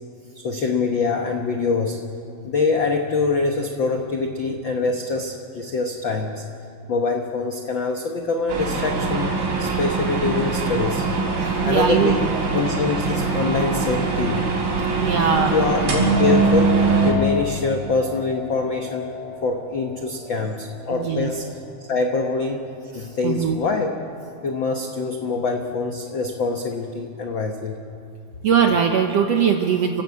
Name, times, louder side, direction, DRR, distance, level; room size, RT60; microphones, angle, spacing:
voice 1, 0.4-2.0 2.4-6.4 6.9-11.0 11.6-12.3 12.5-14.5 15.4-19.1 19.4-21.5 21.8-22.6 22.9-24.0 24.4-27.8, left 4 dB, 80° left, 3 dB, 1.0 m, -24 dB
sound 1, 8.5-17.1, right 4 dB, 90° right, 5.8 m, -22 dB
voice 2, 11.4-12.4 15.0-15.6 20.4-20.5 20.9-21.3 22.9-23.6 28.4-30.0, right 7 dB, 70° right, 4 dB, 1.5 m, -21 dB
sound 2, 15.2-24.4 24.9-25.4, left 4 dB, 60° left, 8.8 m, -36 dB
28.0 x 15.0 x 8.3 m, 2.5 s
omnidirectional pair, 4.1 m